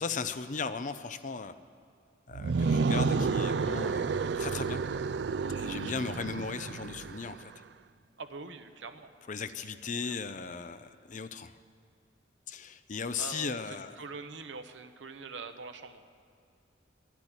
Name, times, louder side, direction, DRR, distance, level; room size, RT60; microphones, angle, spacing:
voice 1, 0.0-1.5 2.3-4.8 5.5-7.5 9.3-11.5 12.5-14.0, left 5 dB, 45° left, 11 dB, 0.6 m, -37 dB
sound 1, 2.3-7.4, right 4 dB, 65° right, 0.4 m, -30 dB
voice 2, 8.2-9.1 9.9-10.2 13.2-16.0, right 4 dB, 85° right, 8 dB, 0.9 m, -44 dB
10.5 x 10.5 x 10.0 m, 2.4 s
head